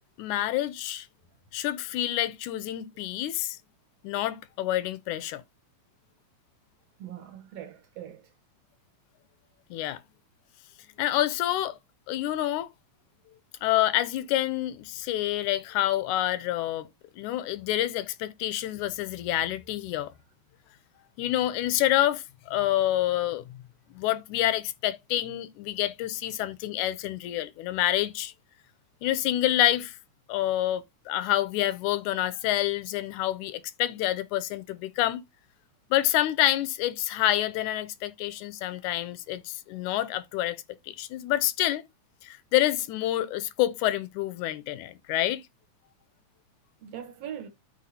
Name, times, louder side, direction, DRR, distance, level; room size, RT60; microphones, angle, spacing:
voice 1, 0.2-1.1 1.5-3.6 4.0-5.4 9.7-10.0 11.0-11.8 12.1-12.7 13.6-16.9 17.2-20.1 21.2-23.4 23.9-28.3 29.0-30.0 30.3-35.2 35.9-40.6 40.9-41.8 42.2-45.4, left 14 dB, 80° left, 2.0 m, -27 dB
voice 2, 7.0-8.3 46.8-47.5, right 10 dB, 65° right, 1.9 m, -41 dB
12.5 x 4.6 x 2.7 m
omnidirectional pair, 3.4 m